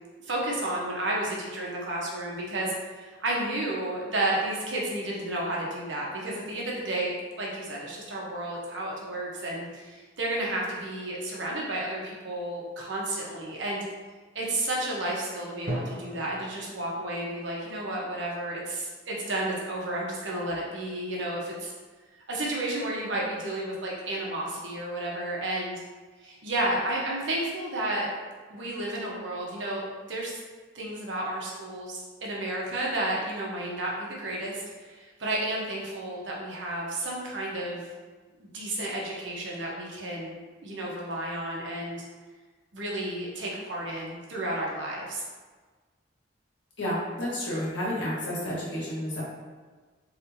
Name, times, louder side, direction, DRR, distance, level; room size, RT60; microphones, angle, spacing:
voice 1, 0.2-13.8 14.3-21.7 22.3-25.8 26.2-28.1 28.5-30.4 30.7-37.9 38.4-42.0 42.7-45.2, right 1 dB, 80° right, -3 dB, 1.0 m, -32 dB
Drum, 15.7-19.4, right 1 dB, 50° right, 0.6 m, -39 dB
voice 2, 46.8-49.2, left 1 dB, 75° left, -7 dB, 1.5 m, -31 dB
4.3 x 3.3 x 2.7 m, 1.4 s
head